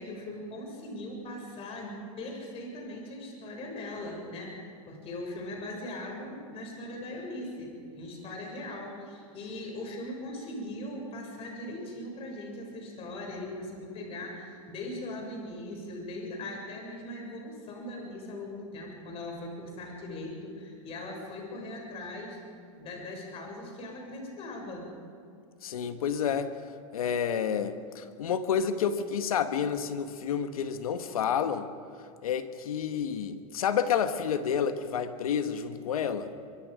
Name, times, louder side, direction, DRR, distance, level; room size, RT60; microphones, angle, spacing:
voice 1, 0.0-22.4 22.8-24.9, left 1 dB, 35° left, 1 dB, 7.0 m, -40 dB
voice 2, 25.6-26.5 26.9-31.7 32.2-36.3, left 7 dB, 85° left, 9 dB, 1.6 m, -29 dB
25.0 x 24.0 x 5.2 m, 2.4 s
hypercardioid pair, 125°, 18 cm